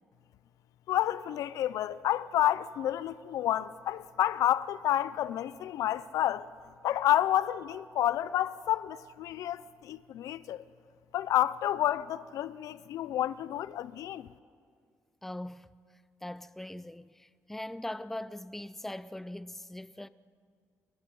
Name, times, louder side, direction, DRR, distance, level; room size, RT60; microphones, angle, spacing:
voice 1, 0.9-6.5 6.8-10.6 11.1-14.3, left 12 dB, 85° left, 0.6 m, -30 dB
voice 2, 15.2-15.7 16.2-20.1, left 1 dB, 5° left, 0.5 m, -41 dB
29.5 x 20.0 x 5.5 m
cardioid pair, 140°, 6 cm